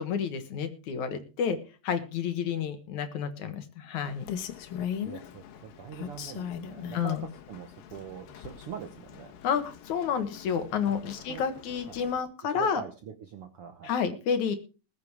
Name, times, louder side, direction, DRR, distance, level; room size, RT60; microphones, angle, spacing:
voice 1, 0.0-1.6 1.8-4.2 6.9-7.3 9.4-12.8 13.8-14.6, left 7 dB, 65° left, 9 dB, 2.6 m, -30 dB
Rain, 4.0-12.2, left 9 dB, 80° left, 2.9 m, -41 dB
voice 2, 5.0-7.2 7.5-9.3 10.9-11.0 11.3-11.4 11.9-12.0 12.5-12.9 13.2-13.9, right 7 dB, 65° right, 7 dB, 1.4 m, -42 dB
20.0 x 7.4 x 4.8 m, 0.35 s
omnidirectional pair, 3.9 m